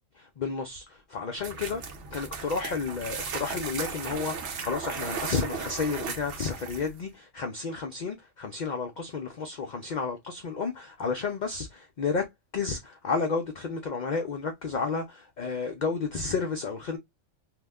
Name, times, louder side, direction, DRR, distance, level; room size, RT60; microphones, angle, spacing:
voice 1, 0.2-1.8 2.1-12.3 12.5-17.0, left 4 dB, 55° left, 0.5 m, -31 dB
sound 1, 1.4-7.0, right 5 dB, 65° right, 1.0 m, -36 dB
2.9 x 2.1 x 3.5 m
omnidirectional pair, 1.4 m